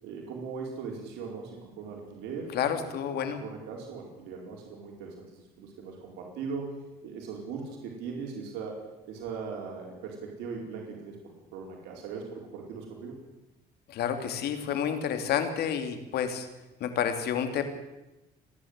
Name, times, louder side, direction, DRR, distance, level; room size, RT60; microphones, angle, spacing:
voice 1, 0.0-2.9 3.4-5.2 5.6-6.7 7.0-8.8 9.0-11.2 11.5-13.1, right 5 dB, 90° right, 0 dB, 4.8 m, -39 dB
voice 2, 2.5-3.4 13.9-16.5 16.8-17.6, left 8 dB, 70° left, 8 dB, 2.9 m, -29 dB
29.5 x 11.0 x 8.2 m, 0.98 s
cardioid pair, 110°, 17 cm